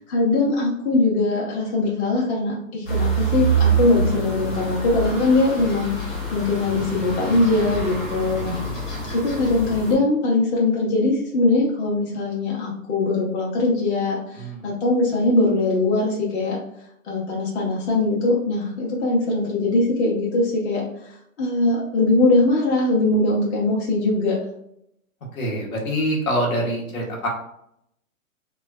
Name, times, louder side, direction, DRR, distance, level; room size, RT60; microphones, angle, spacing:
voice 1, 0.0-8.6 9.1-16.6 17.0-24.4, left 2 dB, 50° left, -4 dB, 0.8 m, -21 dB
sound 1, 2.8-9.9, right 4 dB, 20° left, 0.8 m, -26 dB
voice 2, 25.3-27.3, equal, 80° left, -1 dB, 1.1 m, -25 dB
3.1 x 2.2 x 2.2 m, 0.75 s
hypercardioid pair, 145°, 41 cm